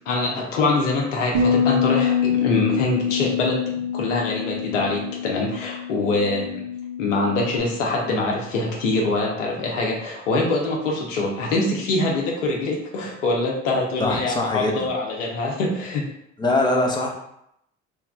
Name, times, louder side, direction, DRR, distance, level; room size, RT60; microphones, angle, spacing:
voice 1, 0.1-6.6 7.0-16.0, left 2 dB, 80° left, -1 dB, 0.9 m, -24 dB
Bass guitar, 1.3-7.6, left 7 dB, 60° right, 0.8 m, -25 dB
voice 2, 14.0-14.9 16.4-17.1, left 2 dB, 10° left, -2 dB, 0.9 m, -23 dB
3.4 x 2.3 x 3.5 m, 0.77 s
hypercardioid pair, 70°, 36 cm